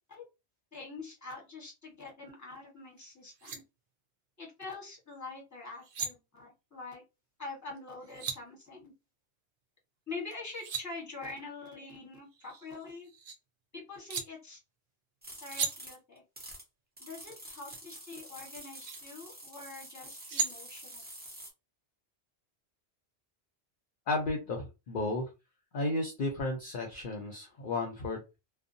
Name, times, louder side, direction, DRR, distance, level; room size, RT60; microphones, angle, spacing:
voice 1, 0.7-3.6 4.4-7.0 7.4-8.9 10.1-13.1 13.7-14.6 15.4-16.2 17.0-21.0, left 3 dB, 15° left, -2 dB, 1.0 m, -45 dB
sound 1, 3.0-3.1 3.3-3.6 5.7-6.1 7.8-8.4 10.3-10.8 12.2-13.4 14.1-14.2 15.5-15.7 17.7-17.8 18.6-19.0 19.9-20.5, right 5 dB, 60° right, 0.7 m, -36 dB
sound 2, 15.2-16.6 17.0-21.5, right 1 dB, 10° right, 0.5 m, -48 dB
voice 2, 24.1-25.3 25.7-28.2, left 2 dB, 60° left, 2 dB, 0.7 m, -33 dB
2.6 x 2.1 x 2.5 m, 0.27 s
omnidirectional pair, 1.1 m